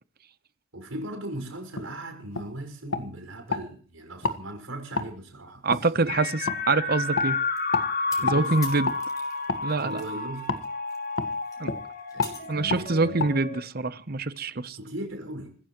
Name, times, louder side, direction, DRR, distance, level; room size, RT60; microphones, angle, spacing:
voice 1, 0.7-6.5 8.2-8.6 9.8-10.6 12.1-13.2 14.7-15.6, right 1 dB, 85° right, 5.9 m, -38 dB
sound 1, 1.7-1.9 2.3-2.5 2.9-3.6 4.2-4.4 4.9-5.1 5.7-5.8 6.5-6.6 7.1-7.3 7.7-7.9 8.3-8.4 8.8-9.0 9.5-9.6 10.5-10.6 11.2-11.3 11.6-11.8 12.2-12.3 12.7-12.8 13.2-13.3, left 3 dB, 75° left, 1.6 m, -28 dB
voice 2, 5.6-7.4 8.2-8.9 9.6-10.0 11.6-11.7 12.5-14.8, right 3 dB, 50° right, 0.9 m, -25 dB
sound 2, 6.1-13.6, left 3 dB, 45° left, 2.6 m, -31 dB
sound 3, 7.6-10.2 10.5-13.0, left 4 dB, 15° left, 4.2 m, -46 dB
27.5 x 15.5 x 3.1 m
head